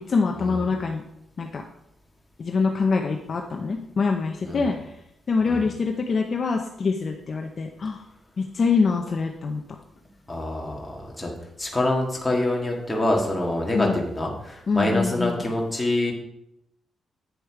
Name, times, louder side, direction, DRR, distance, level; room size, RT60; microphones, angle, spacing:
voice 1, 0.1-1.0 1.4-1.6 2.4-4.9 5.3-8.0 8.4-9.6 13.7-14.0 14.7-15.4, left 4 dB, 35° left, 3 dB, 0.7 m, -24 dB
voice 2, 10.3-11.3 11.6-16.1, left 1 dB, 10° left, -1 dB, 1.9 m, -25 dB
9.6 x 6.9 x 4.8 m, 0.80 s
wide cardioid pair, 170°, 0 cm